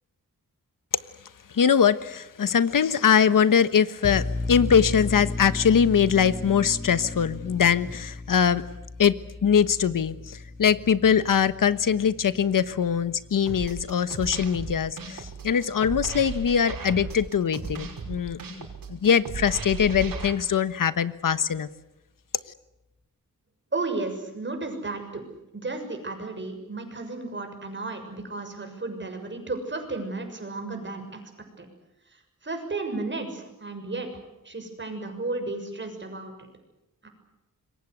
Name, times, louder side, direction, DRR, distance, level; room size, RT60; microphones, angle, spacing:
voice 1, 1.5-8.6 9.0-21.7, left 7 dB, 75° left, 14 dB, 1.3 m, -22 dB
sound 1, 4.0-15.3, left 2 dB, 15° left, 5.4 m, -36 dB
sound 2, 13.5-20.3, right 5 dB, 90° right, 5.7 m, -35 dB
voice 2, 23.7-25.2 25.5-31.2 31.6-31.7 32.1-36.3 37.0-37.1, right 3 dB, 35° right, 5 dB, 6.7 m, -33 dB
26.5 x 23.0 x 8.2 m, 0.95 s
wide cardioid pair, 105°, 33 cm